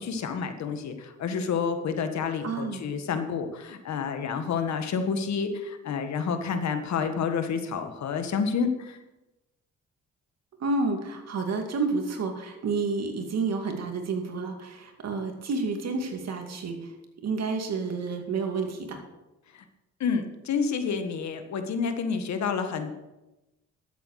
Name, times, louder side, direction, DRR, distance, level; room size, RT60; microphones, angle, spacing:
voice 1, 0.0-9.0 19.5-19.6 20.0-22.9, left 6 dB, 65° left, 7 dB, 1.6 m, -29 dB
voice 2, 2.4-2.8 10.6-16.9 17.2-19.0, right 4 dB, 60° right, 4 dB, 2.4 m, -30 dB
12.5 x 8.3 x 6.5 m, 1.0 s
cardioid pair, 90°, 30 cm